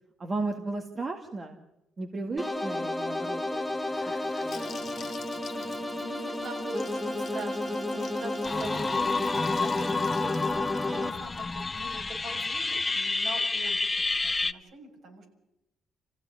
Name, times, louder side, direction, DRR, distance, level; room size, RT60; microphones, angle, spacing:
voice 1, 0.2-1.6 2.0-3.6 3.9-4.1 4.4-5.4, right 3 dB, 35° right, 4 dB, 2.2 m, -35 dB
sound 1, 2.4-11.1, left 1 dB, ahead, 2.2 m, -32 dB
Gurgling / Sink (filling or washing) / Bathtub (filling or washing), 3.5-13.4, left 7 dB, 55° left, 1.9 m, -49 dB
voice 2, 5.4-15.3, right 2 dB, 65° right, 2 dB, 6.7 m, -43 dB
sound 2, 8.4-14.5, left 3 dB, 25° left, 0.9 m, -30 dB
27.5 x 16.0 x 9.8 m, 0.89 s
cardioid pair, 90°, 0 cm